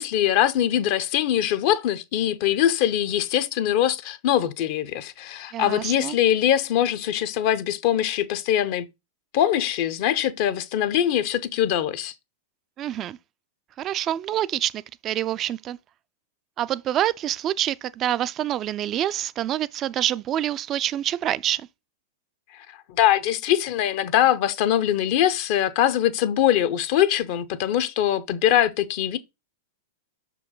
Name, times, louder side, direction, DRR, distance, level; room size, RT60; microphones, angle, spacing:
voice 1, 0.0-8.9 9.3-12.1 22.9-29.2, left 11 dB, 55° left, 0.8 m, -22 dB
voice 2, 5.5-6.2 12.8-13.2 13.8-15.8 16.6-21.7, right 12 dB, 35° right, 0.4 m, -26 dB
6.0 x 4.6 x 3.8 m
hypercardioid pair, 100°, 0 cm